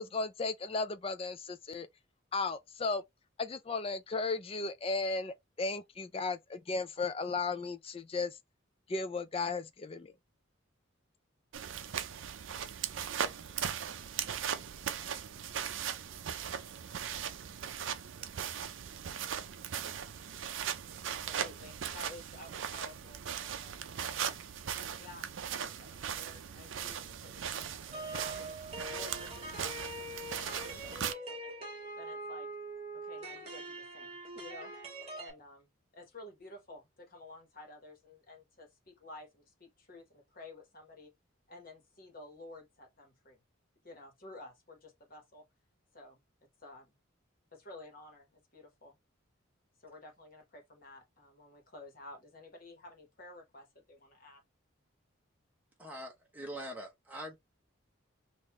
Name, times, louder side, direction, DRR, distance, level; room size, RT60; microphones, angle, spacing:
voice 1, 0.0-1.9 2.3-3.0 3.4-8.4 8.9-10.1, left 3 dB, 30° left, 0.4 m, -35 dB
sound 1, 11.5-31.1, right 8 dB, 65° right, 0.5 m, -39 dB
voice 2, 21.0-24.4 25.0-31.5 32.0-32.5 32.9-34.7 35.2-41.1 41.5-43.4 43.8-45.5 45.9-46.2 46.6-46.9 47.5-49.0 49.8-54.4, left 2 dB, 45° left, 1.3 m, -52 dB
sound 2, 27.9-35.3, right 2 dB, 30° right, 1.4 m, -43 dB
voice 3, 55.8-57.4, equal, 10° right, 0.9 m, -43 dB
3.9 x 2.6 x 3.1 m
head